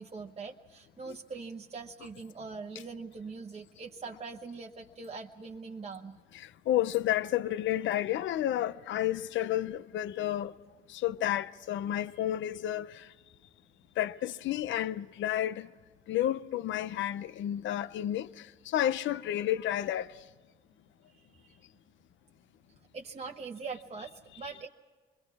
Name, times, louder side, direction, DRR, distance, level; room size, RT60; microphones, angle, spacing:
voice 1, 0.0-6.2 21.1-21.6 22.9-24.7, right 4 dB, 30° right, 1.0 m, -42 dB
voice 2, 6.3-10.5 10.9-13.0 14.0-15.7 16.1-18.3 18.7-20.1, left 12 dB, 70° left, 0.6 m, -31 dB
27.0 x 22.0 x 4.7 m
cardioid pair, 90°, 20 cm